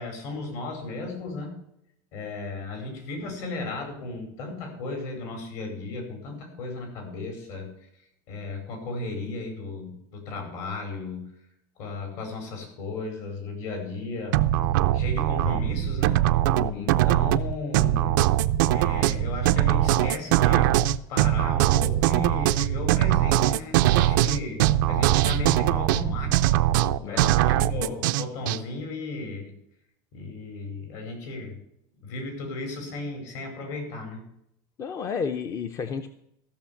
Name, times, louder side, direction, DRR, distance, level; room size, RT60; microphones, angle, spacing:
voice 1, 0.0-1.6 2.1-7.9 8.3-11.3 11.8-14.4 14.9-16.2 16.7-18.2 18.7-20.7 21.1-26.6 27.1-29.5 30.1-31.6 32.0-34.2, left 2 dB, 65° left, 4 dB, 5.0 m, -35 dB
sound 1, 14.3-28.6, right 14 dB, 90° right, 0.5 m, -22 dB
voice 2, 16.6-17.0 27.0-27.3 27.8-28.0 34.8-36.1, left 6 dB, 30° left, 9 dB, 0.6 m, -32 dB
14.5 x 6.5 x 7.2 m, 0.75 s
cardioid pair, 160°, 10 cm